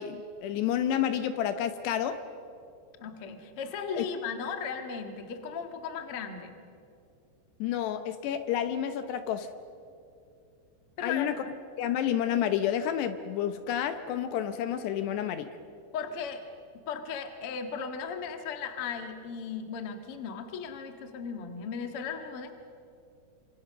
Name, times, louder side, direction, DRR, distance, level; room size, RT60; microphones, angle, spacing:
voice 1, 0.0-2.2 4.0-4.1 7.6-9.5 11.0-11.3 11.8-15.5, left 10 dB, 75° left, 9 dB, 2.8 m, -30 dB
voice 2, 3.0-6.5 11.0-11.3 15.9-16.4 16.9-22.5, left 6 dB, 55° left, 6 dB, 1.6 m, -36 dB
27.5 x 27.0 x 6.5 m, 2.5 s
omnidirectional pair, 5.3 m